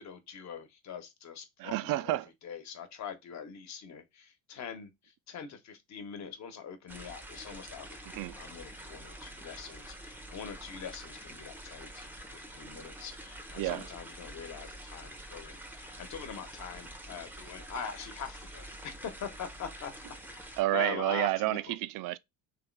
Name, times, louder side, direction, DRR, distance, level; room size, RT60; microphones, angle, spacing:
voice 1, 0.0-2.2 2.4-4.9 5.3-18.9 19.2-19.9 20.3-21.7, left 7 dB, 45° left, 1.2 m, -43 dB
voice 2, 1.6-2.3 8.1-8.3 13.6-13.9 20.6-22.2, right 17 dB, 55° right, 0.5 m, -30 dB
sound 1, 6.9-20.6, right 1 dB, 5° right, 0.7 m, -47 dB
3.4 x 3.1 x 4.6 m
supercardioid pair, 100°, 39 cm